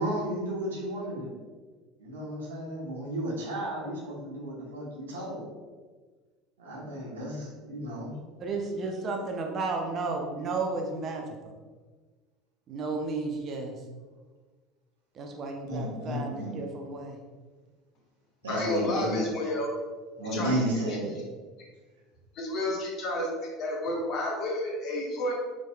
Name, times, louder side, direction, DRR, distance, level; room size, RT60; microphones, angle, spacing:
voice 1, 0.0-1.4 2.0-5.5 6.6-8.1 15.7-16.6 18.4-19.2 20.1-21.1, equal, 75° right, -3 dB, 1.1 m, -33 dB
voice 2, 8.4-11.2 12.7-13.8 15.1-17.2, right 3 dB, 40° right, 2 dB, 0.6 m, -33 dB
voice 3, 18.5-19.7 20.3-20.5 22.3-23.3 23.6-25.3, left 1 dB, 45° left, -2 dB, 1.2 m, -30 dB
4.8 x 4.1 x 2.3 m, 1.4 s
figure-of-eight pair, 70°, 0 cm